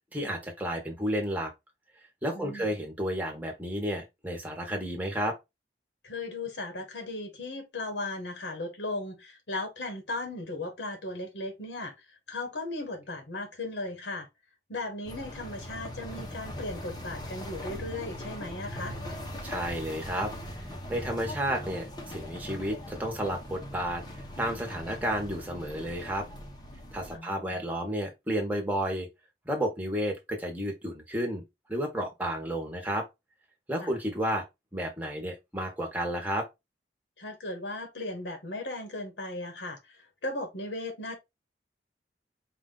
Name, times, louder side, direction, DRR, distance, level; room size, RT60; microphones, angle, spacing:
voice 1, 0.1-1.5 2.2-5.4 19.4-20.3 20.9-24.0 24.4-26.3 26.9-29.1 29.4-31.4 31.7-33.0 33.7-34.4 34.7-36.5, equal, 10° right, 1.1 m, -31 dB
voice 2, 2.3-2.7 6.0-14.3 14.7-19.0 27.1-27.6 33.8-34.0 37.2-41.1, left 2 dB, 90° left, 1.3 m, -37 dB
sound 1, 15.1-27.2, left 1 dB, 25° left, 0.9 m, -40 dB
4.9 x 2.5 x 3.8 m
head